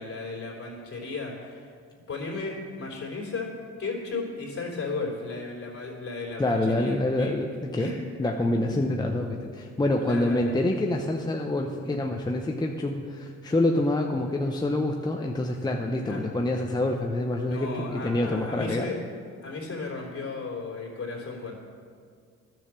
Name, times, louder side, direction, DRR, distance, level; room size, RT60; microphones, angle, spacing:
voice 1, 0.0-1.7 2.1-3.5 3.8-7.3 7.8-8.0 8.6-8.9 10.0-10.5 16.1-16.2 17.5-19.0 19.4-21.5, left 3 dB, 50° left, -2 dB, 3.2 m, -35 dB
voice 2, 6.4-7.9 8.2-18.9, left 1 dB, 15° left, 2 dB, 0.7 m, -26 dB
10.5 x 6.7 x 7.4 m, 2.1 s
cardioid pair, 90°, 30 cm